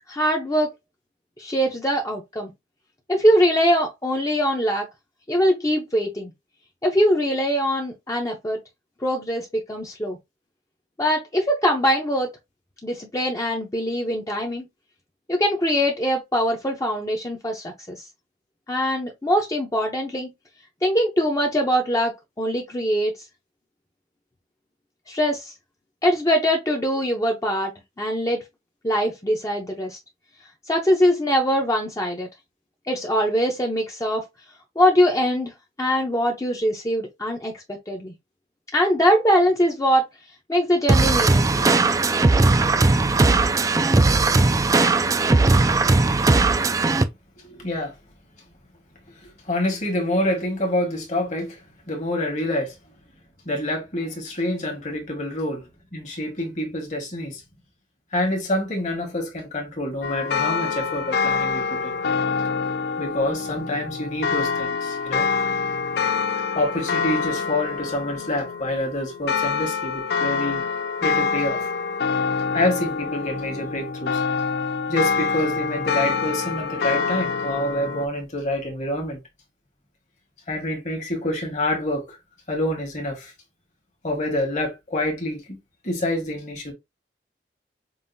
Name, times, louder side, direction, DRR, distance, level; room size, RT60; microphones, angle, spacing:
voice 1, 0.1-0.7 1.4-2.5 3.1-4.9 5.3-6.3 6.8-8.6 9.0-10.2 11.0-12.3 12.8-14.7 15.3-18.1 18.7-20.3 20.8-23.1 25.1-25.5 26.0-27.7 28.0-28.4 28.8-30.0 30.7-32.3 32.9-34.3 34.8-38.1 38.7-40.0 40.5-41.7, equal, 20° left, 0.7 m, -22 dB
sound 1, 40.9-47.0, right 3 dB, 20° right, 0.3 m, -18 dB
voice 2, 47.5-47.9 49.2-51.6 51.9-52.7 53.4-57.4 58.1-61.9 63.0-65.2 66.5-70.6 71.0-71.7 72.5-74.2 74.9-79.2 80.5-82.2 82.5-83.3 84.0-85.6 85.8-86.7, left 1 dB, 45° left, 1.5 m, -27 dB
sound 2, 60.0-78.1, left 5 dB, 65° left, 0.4 m, -26 dB
5.4 x 2.5 x 2.6 m
head